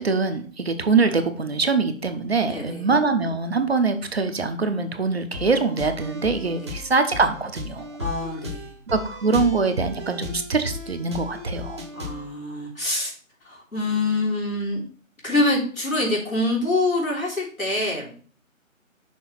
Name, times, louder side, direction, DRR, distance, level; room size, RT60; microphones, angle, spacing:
voice 1, 0.0-7.9 8.9-11.8, right 4 dB, 50° right, 8 dB, 0.8 m, -23 dB
voice 2, 2.5-2.9 6.6-6.7 8.0-8.7 11.9-13.1 13.4-14.8 15.2-18.1, left 2 dB, 90° left, -4 dB, 3.4 m, -25 dB
sound 1, 5.3-12.3, left 3 dB, 20° right, 0.9 m, -35 dB
6.2 x 3.3 x 5.8 m, 0.44 s
figure-of-eight pair, 155°, 40 cm